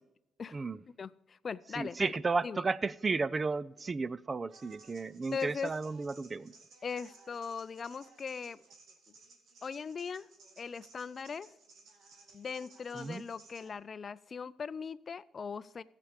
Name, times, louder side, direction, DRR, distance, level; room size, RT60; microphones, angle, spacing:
voice 1, 1.0-2.1 2.4-2.6 5.3-5.7 6.8-8.6 9.6-10.3 10.6-11.5 12.3-15.8, left 6 dB, 40° left, 0.4 m, -39 dB
voice 2, 1.8-6.5 12.9-13.2, right 4 dB, 30° right, 0.4 m, -33 dB
sound 1, 4.5-13.7, right 4 dB, 70° right, 2.1 m, -59 dB
13.5 x 8.4 x 4.9 m
cardioid pair, 90°, 0 cm